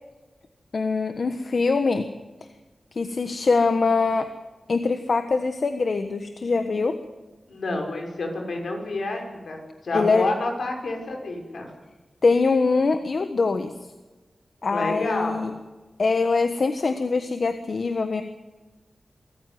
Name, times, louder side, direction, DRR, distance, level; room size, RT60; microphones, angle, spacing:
voice 1, 0.7-2.0 2.9-4.3 4.7-7.0 9.9-10.2 12.2-13.7 14.6-15.5 16.0-18.2, left 4 dB, 55° left, 8 dB, 1.3 m, -23 dB
voice 2, 7.5-11.7 14.7-15.5, left 2 dB, 75° left, 2 dB, 5.8 m, -29 dB
25.5 x 14.5 x 9.4 m, 1.2 s
wide cardioid pair, 125°, 0 cm